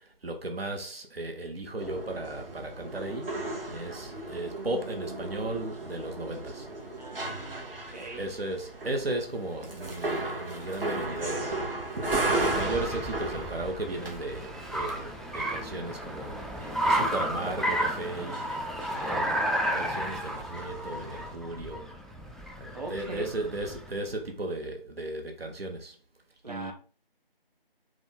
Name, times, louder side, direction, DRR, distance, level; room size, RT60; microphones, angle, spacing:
voice 1, 0.0-6.7 8.2-11.8 12.3-18.5 18.9-19.4 19.7-21.9 22.6-26.0 26.5-26.7, right 2 dB, 85° right, 1.0 m, -36 dB
sound 1, 1.8-21.3, right 2 dB, 70° right, 1.3 m, -36 dB
voice 2, 7.0-8.2 22.7-23.3 26.4-26.7, right 2 dB, 45° right, 1.1 m, -41 dB
Car, 11.2-24.0, equal, ahead, 0.3 m, -33 dB
4.9 x 2.4 x 3.7 m
figure-of-eight pair, 175°, 29 cm